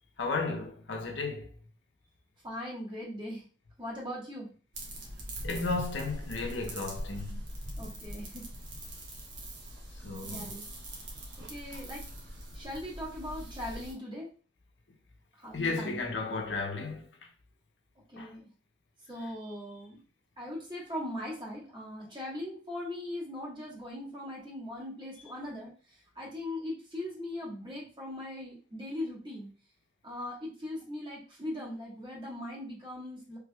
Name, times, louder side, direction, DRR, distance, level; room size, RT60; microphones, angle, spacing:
voice 1, 0.2-1.5 5.4-7.4 10.0-10.5 15.5-17.1 18.2-18.3, left 3 dB, 85° left, 0.7 m, -34 dB
voice 2, 2.4-3.4 3.8-4.5 7.8-8.5 10.2-10.6 11.4-12.0 12.5-14.3 15.4-16.0 18.1-18.5 19.1-20.0 20.4-25.7 26.1-29.5 30.0-33.4, left 1 dB, 25° right, 1.5 m, -39 dB
sound 1, 4.7-13.9, right 1 dB, 85° right, 1.1 m, -42 dB
3.3 x 3.3 x 2.3 m
head